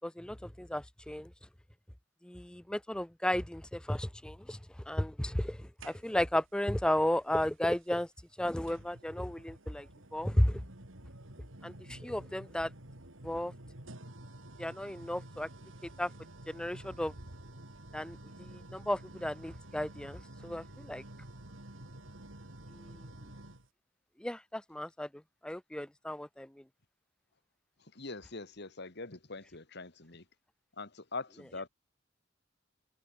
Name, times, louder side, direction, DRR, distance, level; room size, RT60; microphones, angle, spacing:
voice 1, 0.0-1.3 2.2-4.6 4.9-8.1 8.4-9.9 10.1-10.6 11.6-12.7 13.2-13.5 14.6-15.5 15.8-16.1 16.5-17.1 17.9-21.0 22.7-23.0 24.2-25.1 25.4-26.5, left 1 dB, 5° left, 0.4 m, -34 dB
sound 1, 5.8-6.4 7.8-7.9 8.7-23.7, right 1 dB, 80° right, 4.0 m, -50 dB
voice 2, 27.8-30.2 30.8-31.7, left 3 dB, 55° left, 2.3 m, -43 dB
head